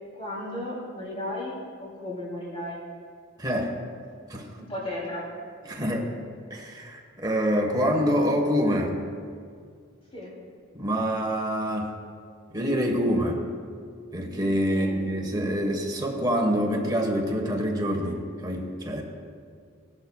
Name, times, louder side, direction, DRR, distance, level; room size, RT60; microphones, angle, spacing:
voice 1, 0.1-2.8 4.6-5.3 10.1-10.3 14.7-14.9, left 1 dB, 25° left, -6 dB, 2.8 m, -35 dB
voice 2, 3.4-3.7 4.3-4.5 5.7-6.1 6.5-9.0 10.7-11.9 12.5-13.4 14.1-19.0, equal, 20° right, 1 dB, 1.3 m, -26 dB
17.5 x 11.5 x 2.3 m, 2.1 s
head